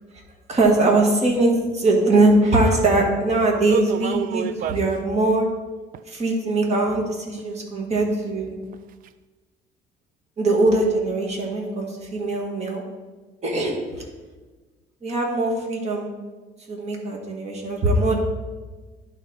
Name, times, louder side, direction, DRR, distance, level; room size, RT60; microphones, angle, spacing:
voice 1, 0.5-5.5 6.1-8.6 10.4-12.8 13.4-13.8 15.0-16.1 16.7-18.1, right 2 dB, 40° right, 1 dB, 1.7 m, -21 dB
sound 1, 3.6-4.9 5.9-6.0 6.7-6.8 7.3-7.4 8.0-8.1 8.6-8.8 9.1-9.2, right 9 dB, 55° right, 0.4 m, -29 dB
11.0 x 4.1 x 4.3 m, 1.3 s
cardioid pair, 110°, 17 cm